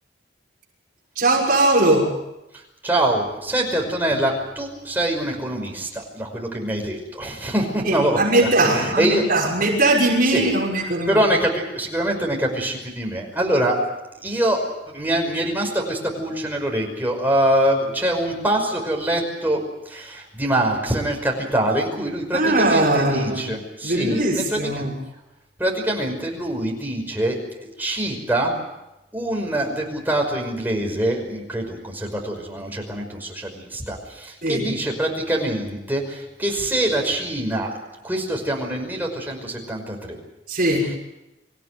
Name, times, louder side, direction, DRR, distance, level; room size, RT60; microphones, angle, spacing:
voice 1, 1.1-2.1 7.8-11.2 22.3-23.4 23.8-25.0 34.4-34.7 40.5-40.9, right 2 dB, 45° right, -3 dB, 6.3 m, -20 dB
voice 2, 2.8-9.2 10.3-10.5 11.1-13.8 14.2-14.6 14.9-19.6 19.9-24.9 25.6-28.6 29.1-37.7 38.0-40.2, right 1 dB, 10° right, 0 dB, 5.6 m, -24 dB
26.5 x 16.0 x 9.4 m, 0.94 s
head